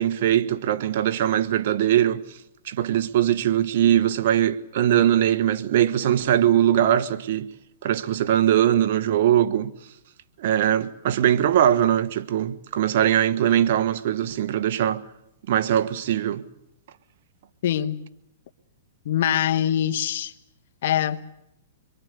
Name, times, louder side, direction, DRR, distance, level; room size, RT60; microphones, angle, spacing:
voice 1, 0.0-2.2 2.6-7.5 7.8-9.7 10.4-15.0 15.5-16.4, right 11 dB, 60° right, 1.3 m, -21 dB
voice 2, 17.6-18.0 19.0-20.3 20.8-21.2, left 10 dB, 65° left, 1.3 m, -23 dB
26.0 x 23.0 x 6.8 m
hypercardioid pair, 140°, 0 cm